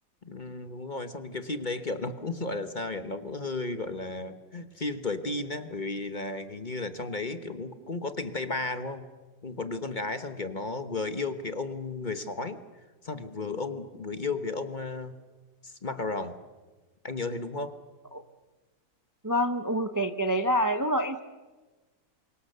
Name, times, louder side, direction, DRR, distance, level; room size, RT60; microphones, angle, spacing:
voice 1, 0.2-9.0 9.4-12.6 13.0-15.2 15.6-16.3 17.0-17.7, left 3 dB, 30° left, 9 dB, 1.1 m, -34 dB
voice 2, 19.2-21.2, equal, 20° right, 7 dB, 0.6 m, -26 dB
28.0 x 24.5 x 6.8 m, 1.2 s
omnidirectional pair, 1.8 m